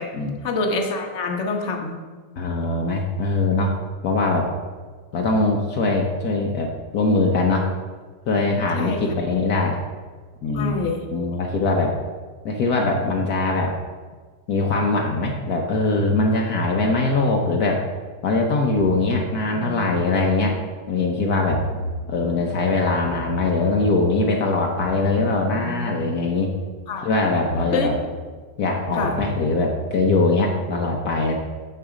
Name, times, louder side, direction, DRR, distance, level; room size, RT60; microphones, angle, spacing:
voice 1, 0.4-1.9 8.8-9.0 10.5-11.0 26.9-27.1 27.7-27.9 28.9-29.2, left 3 dB, 50° left, 2 dB, 1.4 m, -25 dB
voice 2, 2.4-3.8 4.0-4.5 5.1-7.7 8.3-9.8 10.4-10.7 11.1-11.9 12.4-13.7 14.5-17.8 18.2-20.6 20.9-21.6 22.1-26.5 27.0-28.0 28.6-31.3, left 3 dB, 65° left, 1 dB, 1.4 m, -22 dB
sound 1, 18.8-21.0 21.5-22.3 23.0-27.1 27.5-28.3 29.0-30.8, right 1 dB, 85° left, 2.1 m, -34 dB
12.5 x 4.9 x 4.9 m, 1.4 s
omnidirectional pair, 1.8 m